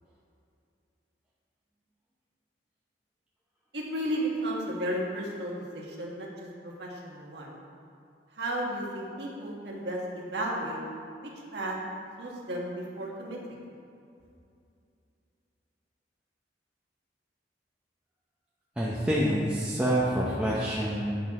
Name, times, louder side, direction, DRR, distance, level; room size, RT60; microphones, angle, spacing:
voice 1, 3.7-7.5 8.3-10.8 11.5-11.8 12.2-13.6, right 1 dB, 65° right, -3 dB, 1.4 m, -34 dB
voice 2, 18.8-21.2, equal, 5° right, -6 dB, 0.7 m, -27 dB
8.4 x 6.1 x 3.7 m, 2.5 s
head